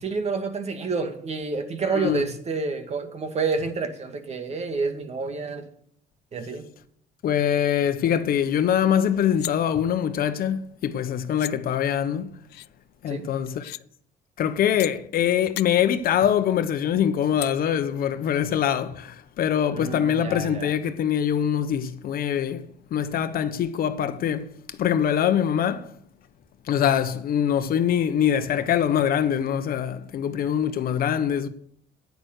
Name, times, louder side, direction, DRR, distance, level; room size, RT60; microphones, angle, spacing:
voice 1, 0.0-5.7 6.3-6.7 13.1-13.3 19.7-20.7, right 4 dB, 40° right, 2.0 m, -29 dB
voice 2, 1.9-2.2 7.2-12.3 13.0-13.7 14.4-25.9 26.7-31.5, left 9 dB, 60° left, 1.1 m, -24 dB
sound 1, 8.5-8.6 8.9-9.5 10.9-11.0 11.3-11.5 12.5-12.7 13.5-13.8 14.8-14.9 15.3-15.7 17.4-17.5, left 18 dB, 75° left, 0.4 m, -36 dB
9.5 x 9.5 x 6.6 m
cardioid pair, 110°, 17 cm